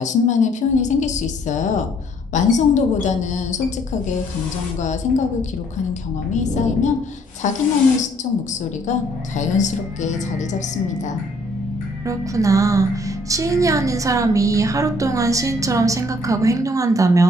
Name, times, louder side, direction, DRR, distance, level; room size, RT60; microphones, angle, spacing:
voice 1, 0.0-1.9 2.3-11.3, left 6 dB, 65° left, 8 dB, 0.4 m, -21 dB
sound 1, 0.7-16.6, left 2 dB, 90° left, 0.9 m, -29 dB
voice 2, 12.0-17.2, right 3 dB, 25° right, 7 dB, 0.4 m, -19 dB
5.0 x 2.4 x 3.2 m, 0.66 s
cardioid pair, 70°, 13 cm